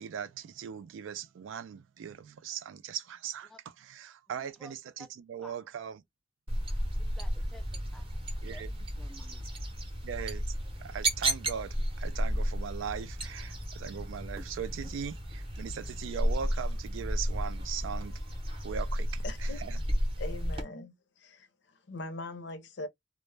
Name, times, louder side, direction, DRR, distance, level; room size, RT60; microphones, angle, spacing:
voice 1, 0.0-6.0 8.4-8.8 10.0-19.8, right 8 dB, 85° right, 0.3 m, -40 dB
voice 2, 4.3-5.1 5.4-5.6 6.7-8.1 8.5-8.6 9.0-9.4, equal, ahead, 0.3 m, -53 dB
sound 1, 6.5-20.6, equal, 30° right, 0.6 m, -33 dB
voice 3, 19.2-19.6 20.2-22.9, left 2 dB, 65° left, 0.5 m, -42 dB
2.1 x 2.0 x 3.1 m
head